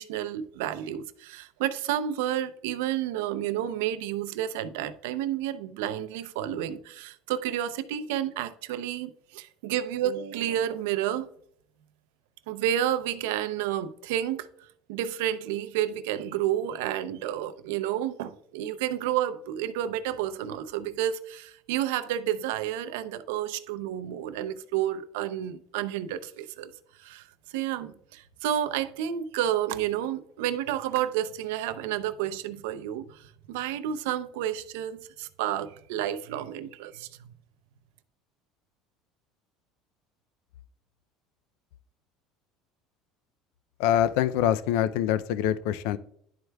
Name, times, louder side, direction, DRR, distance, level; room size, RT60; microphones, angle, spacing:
voice 1, 0.0-11.3 12.5-14.5 14.9-26.7 27.0-27.2 27.5-33.2 33.5-37.1, right 11 dB, 80° right, 0.5 m, -30 dB
voice 2, 43.8-46.0, left 11 dB, 75° left, 0.3 m, -24 dB
11.0 x 4.5 x 2.2 m
supercardioid pair, 100°, 0 cm